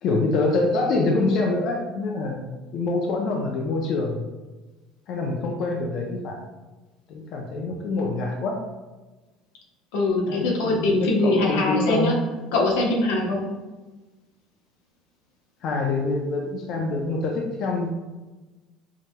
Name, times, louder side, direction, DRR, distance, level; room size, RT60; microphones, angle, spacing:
voice 1, 0.0-4.3 5.1-6.4 7.1-8.6 10.2-12.1 15.6-17.9, left 3 dB, 50° left, 0 dB, 0.5 m, -25 dB
voice 2, 9.9-12.1 12.5-13.4, left 2 dB, 90° left, -1 dB, 0.9 m, -22 dB
4.7 x 2.9 x 2.2 m, 1.2 s
cardioid pair, 145°, 0 cm